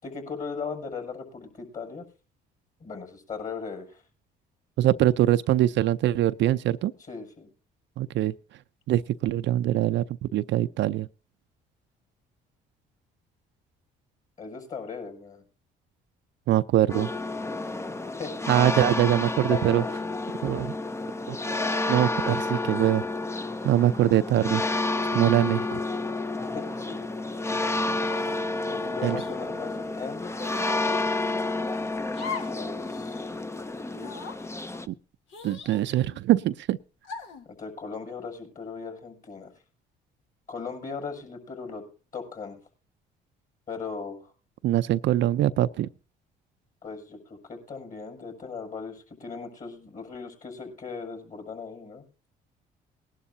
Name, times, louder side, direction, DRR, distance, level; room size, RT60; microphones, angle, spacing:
voice 1, 0.0-2.0 2.8-4.0 7.1-7.5 14.4-15.4 18.0-18.5 19.3-20.1 26.5-27.1 28.7-30.2 32.5-33.3 37.4-39.5 40.5-41.8 42.1-42.6 43.7-44.3 46.8-52.0, left 5 dB, 40° left, 6.5 m, -38 dB
voice 2, 4.8-6.9 8.0-8.3 8.9-11.1 16.5-17.1 18.5-19.8 20.4-20.7 21.3-21.4 21.9-23.0 23.6-24.6 25.1-25.8 29.0-29.2 34.9-35.0 35.4-36.8 44.6-45.9, right 13 dB, 65° right, 0.5 m, -23 dB
sound 1, 16.9-34.9, left 2 dB, 15° left, 0.6 m, -30 dB
sound 2, 28.1-28.5 29.2-29.3 30.4-30.8 32.1-32.6 33.0-33.1 33.9-34.4 35.3-36.2 37.0-37.5, left 5 dB, 70° left, 1.6 m, -39 dB
20.0 x 11.5 x 2.8 m
supercardioid pair, 70°, 20 cm